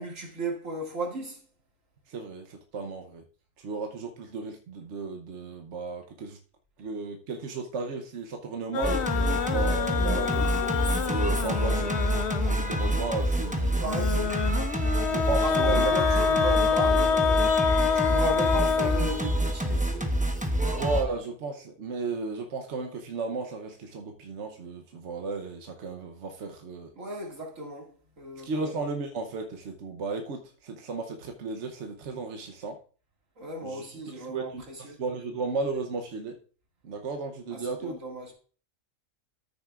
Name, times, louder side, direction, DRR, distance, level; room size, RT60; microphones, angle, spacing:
voice 1, 0.0-1.4 13.8-14.4 15.4-17.5 17.9-20.8 26.9-28.5 33.4-35.0 37.5-38.3, right 2 dB, 85° right, 2.6 m, -35 dB
voice 2, 2.1-3.2 3.6-6.4 6.8-9.0 9.5-10.5 11.1-11.9 12.5-13.9 15.1-15.9 20.8-26.9 28.4-32.8 33.6-33.9 34.1-36.4 36.8-38.0, right 4 dB, 65° right, 1.1 m, -34 dB
sound 1, 8.7-12.8 13.9-19.7, left 7 dB, 65° left, 0.9 m, -27 dB
Singing, 8.8-21.0, right 1 dB, 5° right, 0.8 m, -27 dB
13.5 x 6.8 x 2.4 m
omnidirectional pair, 1.3 m